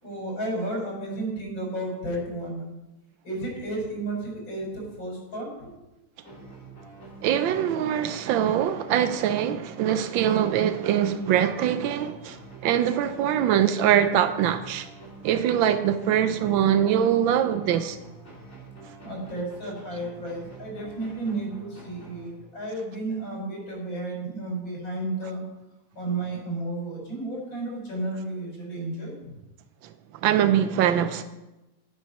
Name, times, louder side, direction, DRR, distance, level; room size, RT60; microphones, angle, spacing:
voice 1, 0.0-2.7 3.2-5.7 6.4-6.5 16.2-16.7 19.0-25.4 25.9-29.4, right 2 dB, 85° left, 5.0 m, -33 dB
sound 1, 6.2-22.8, right 2 dB, 35° left, 4.3 m, -46 dB
voice 2, 7.2-12.4 12.6-14.9 15.2-18.0 18.9-19.0 29.8-29.9 30.2-31.2, right 10 dB, 85° right, 1.4 m, -23 dB
10.0 x 9.3 x 5.4 m
omnidirectional pair, 2.1 m